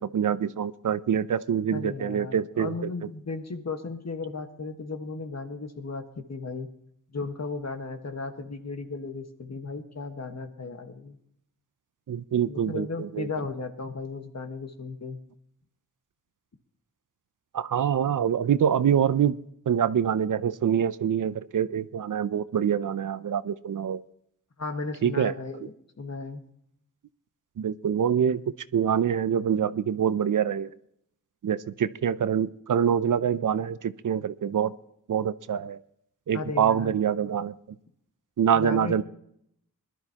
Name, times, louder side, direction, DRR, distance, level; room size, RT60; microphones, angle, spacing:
voice 1, 0.0-2.7 12.1-13.3 17.5-19.4 19.7-24.0 25.0-25.3 27.6-28.4 28.7-30.7 31.4-34.7 35.1-35.8 36.3-37.5 38.4-39.0, right 8 dB, 65° right, 15 dB, 0.6 m, -25 dB
voice 2, 1.7-6.7 7.1-11.2 12.5-15.2 24.6-26.4 36.3-37.0 38.5-39.0, left 4 dB, 50° left, 6 dB, 1.6 m, -35 dB
21.0 x 12.0 x 2.9 m, 0.72 s
wide cardioid pair, 75°, 33 cm